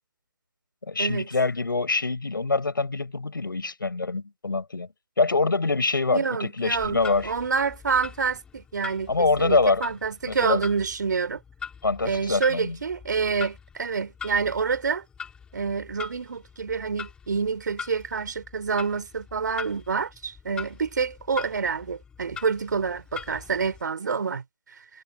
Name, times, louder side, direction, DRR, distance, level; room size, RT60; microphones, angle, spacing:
voice 1, 0.8-4.9 5.2-7.3 9.1-9.8 10.3-10.6 11.8-12.8, left 3 dB, 85° left, 7.0 m, -25 dB
voice 2, 6.1-11.4 12.0-15.0 15.5-24.4, right 5 dB, 65° right, 4.7 m, -27 dB
Clock, 6.7-23.8, left 6 dB, 10° left, 4.9 m, -42 dB
hypercardioid pair, 155°, 11 cm